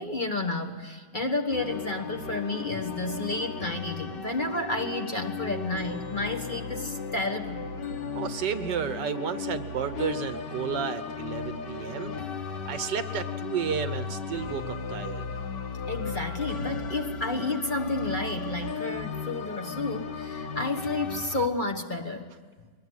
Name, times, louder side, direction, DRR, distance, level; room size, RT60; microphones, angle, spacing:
voice 1, 0.0-7.6 15.9-22.3, left 2 dB, 30° left, 4 dB, 1.4 m, -31 dB
sound 1, 1.5-21.5, left 5 dB, 75° left, 2.1 m, -35 dB
voice 2, 8.2-12.1 12.7-15.4, right 7 dB, 75° right, 11 dB, 1.7 m, -32 dB
22.5 x 20.5 x 9.6 m, 1.5 s
omnidirectional pair, 1.9 m